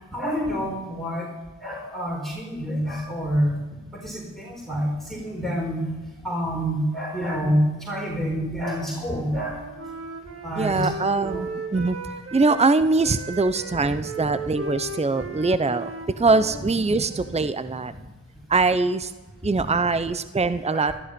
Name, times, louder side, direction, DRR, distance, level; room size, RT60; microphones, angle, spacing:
voice 1, 0.1-1.3 1.6-3.6 3.9-5.8 6.2-9.6 10.4-11.4 19.5-19.7 20.7-20.9, equal, ahead, -3 dB, 4.7 m, -27 dB
Wind instrument woodwind instrument, 8.9-12.7 13.0-17.5, right 2 dB, 45° right, 2.5 m, -37 dB
voice 2, 10.6-12.0 12.3-17.9 18.5-19.1 19.4-20.9, right 3 dB, 20° right, 13 dB, 0.8 m, -22 dB
14.0 x 13.0 x 5.3 m, 1.2 s
cardioid pair, 40°, 34 cm